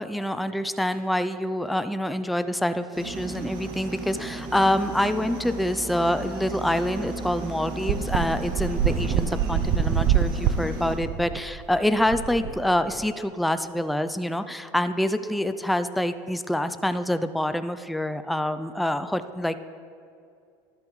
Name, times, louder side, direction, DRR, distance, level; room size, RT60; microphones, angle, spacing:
voice 1, 0.0-19.6, left 1 dB, ahead, 10 dB, 0.3 m, -26 dB
sound 1, 2.9-11.0, right 3 dB, 85° right, 1.9 m, -35 dB
sound 2, 6.9-7.0 7.2-7.3 7.9-13.1, right 8 dB, 60° right, 0.5 m, -25 dB
12.5 x 8.7 x 3.1 m, 2.4 s
supercardioid pair, 105°, 12 cm